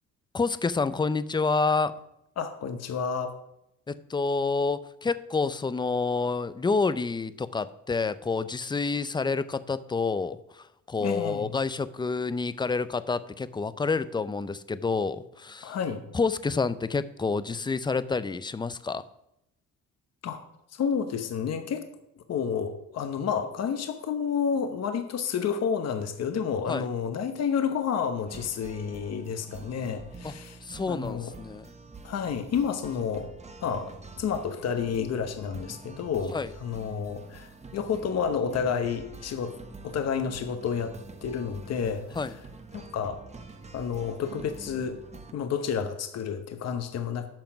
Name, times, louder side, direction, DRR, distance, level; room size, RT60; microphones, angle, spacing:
voice 1, 0.3-1.9 3.9-15.8 16.1-19.1 26.7-26.9 30.2-30.3 30.6-31.7 36.3-36.5 42.2-42.3, left 4 dB, 15° left, 15 dB, 0.4 m, -28 dB
voice 2, 2.4-3.4 11.0-11.6 15.6-16.0 20.2-20.4 20.7-21.9 22.3-31.3 32.0-33.3 33.6-39.6 39.8-40.9 41.2-42.3 42.7-43.2 43.7-45.0 45.3-47.3, left 7 dB, 55° left, 8 dB, 0.9 m, -30 dB
sound 1, 28.3-45.3, right 3 dB, 20° right, 0.9 m, -46 dB
8.9 x 5.7 x 5.9 m, 0.82 s
cardioid pair, 90°, 30 cm